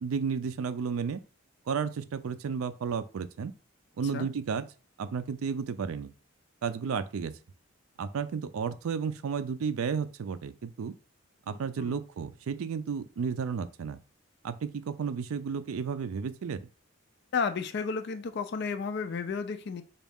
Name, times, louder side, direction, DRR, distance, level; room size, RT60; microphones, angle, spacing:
voice 1, 0.0-1.2 1.7-3.5 4.0-4.7 5.0-6.1 6.6-7.4 8.0-10.9 11.5-14.0 14.4-16.7, right 6 dB, 75° right, 0.4 m, -32 dB
voice 2, 17.3-19.8, left 5 dB, 50° left, 0.4 m, -32 dB
4.1 x 2.3 x 3.5 m
head